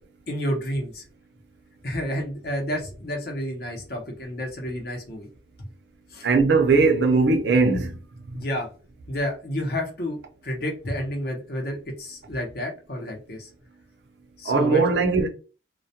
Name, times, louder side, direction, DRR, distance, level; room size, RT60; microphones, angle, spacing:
voice 1, 0.3-1.1 1.8-5.3 5.6-5.7 6.1-6.3 7.7-7.8 8.3-8.7 9.1-10.2 10.4-13.5 14.4-15.0, equal, 50° left, 0.7 m, -30 dB
voice 2, 6.2-7.9 8.3-8.4 14.5-15.3, right 4 dB, 60° right, 0.5 m, -19 dB
2.2 x 2.1 x 2.7 m
head